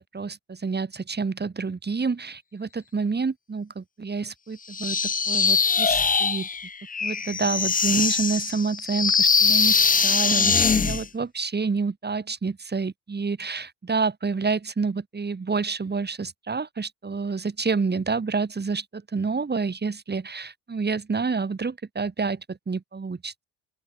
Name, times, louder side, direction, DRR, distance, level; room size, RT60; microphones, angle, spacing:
voice 1, 0.0-6.5 7.0-23.4, right 4 dB, 25° right, 5.6 m, -28 dB
sound 1, 4.7-11.1, left 5 dB, 20° left, 1.0 m, -22 dB
open air
cardioid pair, 90°, 38 cm